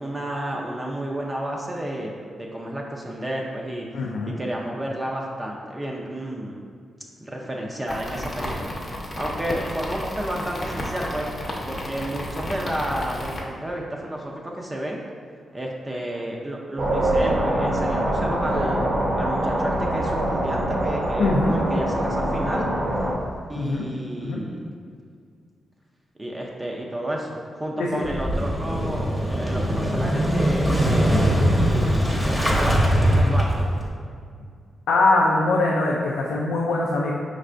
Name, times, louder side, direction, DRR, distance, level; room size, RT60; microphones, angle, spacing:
voice 1, 0.0-3.9 4.3-6.6 7.2-8.7 9.2-11.3 11.6-15.0 15.5-18.9 19.2-22.7 23.5-24.7 26.2-33.7, right 1 dB, 20° right, -1 dB, 0.5 m, -31 dB
voice 2, 3.9-4.3 21.2-21.5 23.6-23.8 24.2-24.4 27.8-28.0 34.9-37.1, left 2 dB, 85° left, -3 dB, 0.4 m, -22 dB
sound 1, 7.9-13.4, left 1 dB, 45° left, 0.8 m, -32 dB
sound 2, 16.8-23.1, right 1 dB, 60° right, 0.8 m, -24 dB
Motorcycle / Engine starting, 28.0-33.9, equal, ahead, 0.8 m, -21 dB
5.0 x 3.3 x 2.5 m, 2.2 s
cardioid pair, 60°, 0 cm